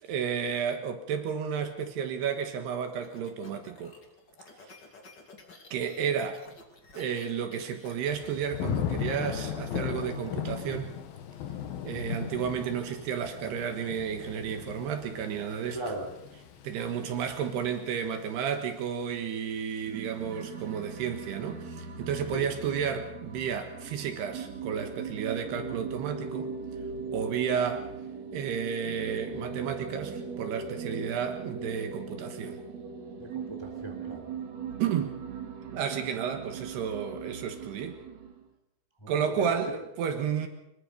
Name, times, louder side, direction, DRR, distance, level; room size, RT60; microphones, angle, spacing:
voice 1, 0.0-3.9 5.7-6.4 6.9-11.0 11.8-15.8 16.6-26.5 27.1-27.9 28.3-32.6 34.8-35.2 35.7-38.0 39.1-40.5, right 7 dB, 70° right, 6 dB, 3.3 m, -32 dB
sound 1, 2.5-9.0, left 3 dB, 30° left, 2.3 m, -53 dB
Thunder / Rain, 8.1-19.0 19.4-19.9, left 9 dB, 65° left, 2.8 m, -37 dB
voice 2, 15.7-16.1 22.3-22.5 33.2-34.2 39.0-39.6, right 1 dB, 5° left, 2 dB, 3.0 m, -37 dB
sound 2, 19.8-38.4, right 5 dB, 50° right, 2.5 m, -39 dB
24.5 x 21.0 x 5.3 m, 0.86 s
omnidirectional pair, 5.1 m